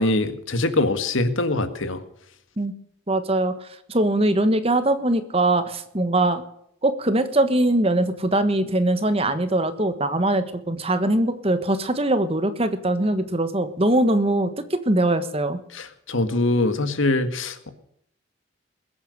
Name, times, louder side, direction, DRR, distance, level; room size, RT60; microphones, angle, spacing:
voice 1, 0.0-2.0 15.7-17.7, left 2 dB, 75° left, 10 dB, 1.8 m, -23 dB
voice 2, 3.1-3.5 3.9-6.4 6.8-15.6, right 1 dB, 30° right, 10 dB, 1.4 m, -22 dB
21.0 x 8.7 x 6.5 m, 0.71 s
head